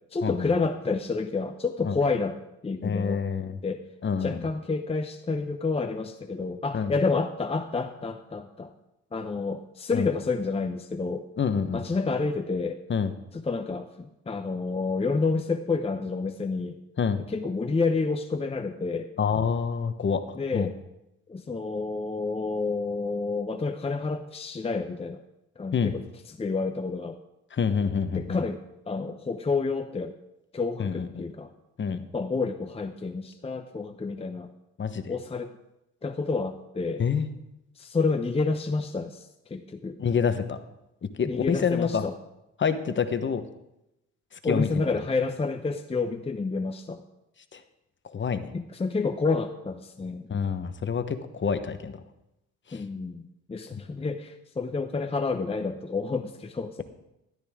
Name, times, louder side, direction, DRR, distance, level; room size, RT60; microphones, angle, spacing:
voice 1, 0.1-2.4 2.6-3.2 3.6-3.8 4.2-8.7 9.1-11.2 11.7-12.8 13.3-16.8 17.3-19.1 20.3-20.7 21.3-25.2 25.6-26.0 26.4-27.2 28.1-28.6 28.9-30.1 30.5-31.5 31.9-34.5 35.1-35.5 36.0-37.0 37.8-40.0 41.2-42.1 44.4-47.0 48.5-50.3 52.7-56.8, left 4 dB, 20° left, 6 dB, 0.8 m, -29 dB
voice 2, 2.8-3.6 4.0-4.5 6.7-6.9 9.9-10.1 11.4-11.8 12.9-13.1 17.0-17.2 19.2-20.7 25.7-25.9 27.5-28.4 30.8-31.2 31.8-32.0 34.8-35.1 37.0-37.3 40.0-40.6 41.1-42.1 42.6-43.4 44.3-44.8 47.5-47.6 48.0-48.5 50.3-52.0 52.7-52.8 53.7-53.8, left 6 dB, 40° left, 9 dB, 1.1 m, -27 dB
13.5 x 12.0 x 3.7 m, 0.89 s
cardioid pair, 90°, 30 cm